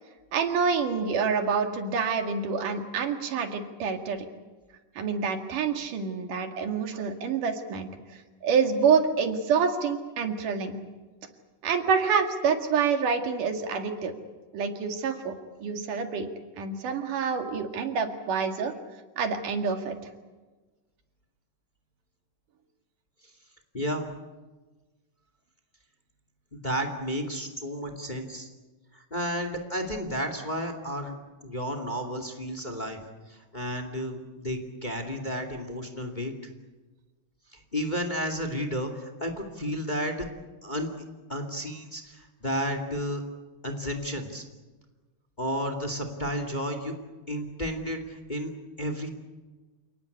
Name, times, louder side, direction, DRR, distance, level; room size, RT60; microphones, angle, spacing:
voice 1, 0.3-4.3 5.0-7.9 8.4-10.8 11.6-14.1 14.5-15.3 15.6-16.3 16.6-18.7 19.2-20.0, right 6 dB, 85° right, 5 dB, 3.7 m, -27 dB
voice 2, 23.7-24.1 26.5-28.5 28.9-31.1 31.4-33.0 33.3-36.3 37.5-40.3 40.6-40.9 41.3-43.2 43.6-44.4 45.4-46.9 47.3-48.5 48.8-49.1, equal, 15° left, 7 dB, 2.3 m, -32 dB
29.0 x 18.5 x 8.5 m, 1.2 s
omnidirectional pair, 3.6 m